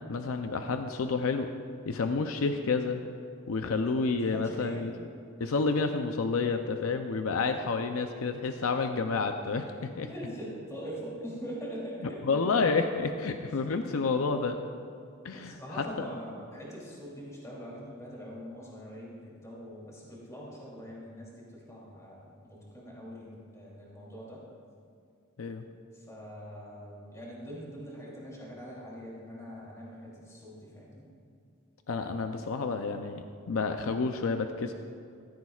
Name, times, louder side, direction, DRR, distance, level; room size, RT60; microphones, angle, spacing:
voice 1, 0.1-1.5 1.9-3.0 3.5-4.9 5.4-10.1 12.2-14.6 15.2-15.6 16.0-16.1 25.4-25.7 31.9-34.7, left 4 dB, 75° left, 6 dB, 0.5 m, -29 dB
voice 2, 4.3-4.8 10.0-12.4 15.3-24.4 25.9-31.1, equal, 15° left, -5 dB, 2.9 m, -43 dB
15.0 x 14.0 x 2.4 m, 2.3 s
head